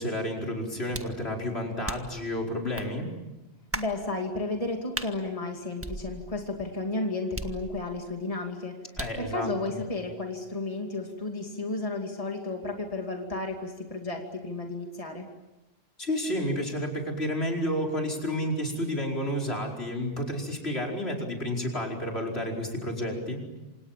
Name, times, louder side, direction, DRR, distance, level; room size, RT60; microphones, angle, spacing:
voice 1, 0.0-3.1 9.0-9.8 16.0-23.4, equal, 75° left, 0 dB, 5.2 m, -31 dB
sound 1, 0.9-1.2 1.9-2.2 2.8-2.9 3.7-4.0 4.9-5.1 5.8-6.5 7.4-8.0 9.0-9.3, right 1 dB, 15° right, 1.5 m, -36 dB
voice 2, 3.7-8.8 9.2-15.3, left 2 dB, 35° left, 2 dB, 2.7 m, -33 dB
28.0 x 27.5 x 7.5 m, 1.1 s
omnidirectional pair, 1.1 m